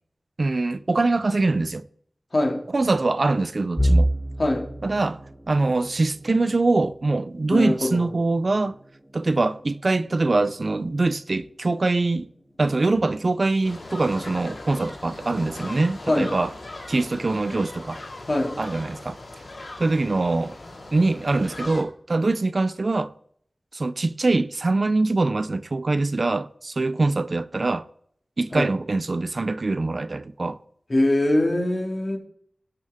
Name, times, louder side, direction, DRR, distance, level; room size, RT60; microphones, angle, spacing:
voice 1, 0.4-1.9 2.7-4.1 4.8-8.8 9.1-12.3 12.6-16.5 16.9-18.0 18.6-19.2 19.8-20.6 20.9-23.1 23.7-27.9 28.4-30.6, right 3 dB, 60° right, 0.5 m, -23 dB
sound 1, 3.8-15.6 16.0-16.3 16.7-16.8 17.7-18.2, right 1 dB, 5° right, 2.8 m, -31 dB
voice 2, 7.5-8.1 16.1-16.3 18.3-18.6 28.5-28.7 30.9-32.2, left 1 dB, 50° left, 2.4 m, -22 dB
sound 2, 13.6-21.8, left 2 dB, 85° left, 2.5 m, -39 dB
18.0 x 6.5 x 3.6 m
wide cardioid pair, 70°, 0 cm